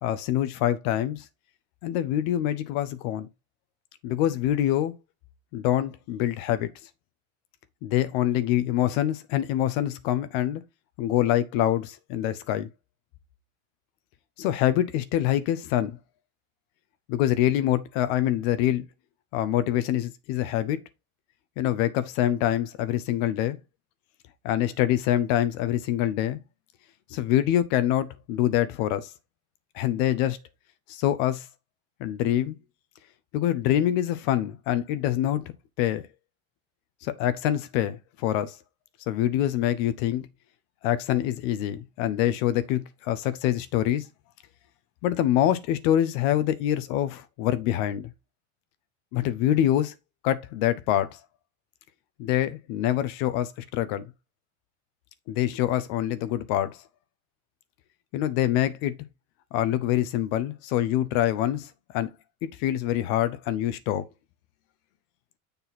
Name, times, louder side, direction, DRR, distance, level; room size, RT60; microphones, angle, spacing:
voice 1, 0.0-1.2 1.8-3.3 4.0-4.9 5.5-6.7 7.8-10.6 11.0-12.7 14.4-16.0 17.1-18.9 19.3-20.8 21.6-23.6 24.4-26.4 27.1-29.1 29.7-30.4 30.9-31.5 32.0-32.6 33.3-36.0 37.0-38.6 39.1-40.3 40.8-44.0 45.0-48.1 49.1-49.9 50.2-51.2 52.2-54.1 55.3-56.8 58.1-58.9 59.5-62.1 62.4-64.1, left 12 dB, 65° left, 0.9 m, -25 dB
6.9 x 4.0 x 4.0 m
hypercardioid pair, 85°, 43 cm